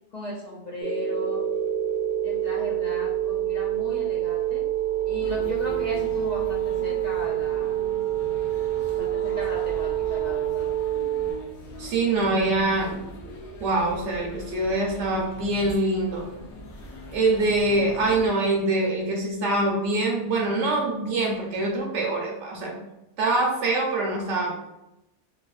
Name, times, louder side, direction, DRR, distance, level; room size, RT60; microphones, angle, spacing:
voice 1, 0.1-1.4 2.2-4.6 5.1-7.8 8.9-10.7, left 1 dB, 55° left, -5 dB, 0.4 m, -37 dB
sound 1, 0.8-11.3, right 11 dB, 55° right, 0.8 m, -27 dB
sound 2, 5.2-18.3, left 1 dB, 75° left, 0.9 m, -42 dB
voice 2, 11.8-13.0 13.6-16.2 17.1-22.8 23.2-24.6, right 2 dB, 75° right, -1 dB, 1.1 m, -24 dB
2.8 x 2.6 x 2.4 m, 0.91 s
omnidirectional pair, 1.2 m